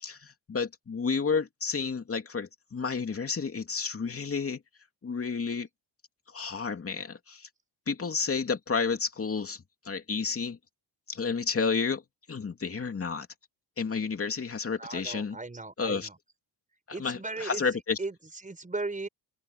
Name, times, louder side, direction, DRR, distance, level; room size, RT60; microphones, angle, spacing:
voice 1, 0.0-4.6 5.0-5.7 6.3-7.5 7.9-10.6 11.1-12.0 12.3-13.3 13.8-15.4 15.8-16.1 16.9-18.0, left 5 dB, 30° left, 2.7 m, -31 dB
voice 2, 14.8-16.2 16.9-19.1, right 3 dB, 15° right, 5.4 m, -37 dB
cardioid pair, 125°, 45 cm